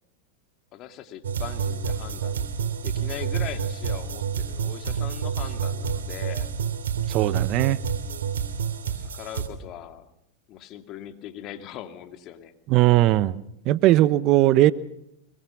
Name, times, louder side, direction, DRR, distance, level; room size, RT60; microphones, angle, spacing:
voice 1, 0.7-2.5 2.8-6.5 8.8-10.1 10.5-12.5, left 11 dB, 45° left, 2.5 m, -40 dB
sound 1, 1.2-9.5, right 7 dB, 80° right, 2.9 m, -28 dB
voice 2, 7.1-7.8 12.7-14.7, right 15 dB, 45° right, 0.9 m, -19 dB
25.0 x 22.5 x 6.0 m
hypercardioid pair, 105°, 0 cm